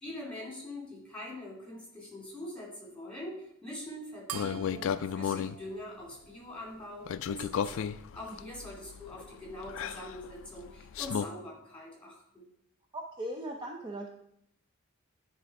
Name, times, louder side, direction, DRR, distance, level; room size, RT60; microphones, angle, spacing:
voice 1, 0.0-12.4, left 1 dB, 5° left, -3 dB, 2.6 m, -43 dB
sound 1, 4.3-5.6 7.1-11.3, left 7 dB, 65° left, 0.3 m, -34 dB
sound 2, 4.3-7.1, right 9 dB, 80° right, 0.5 m, -46 dB
voice 2, 12.9-14.1, right 1 dB, 20° right, 1 dB, 0.6 m, -39 dB
9.8 x 3.5 x 4.7 m, 0.75 s
head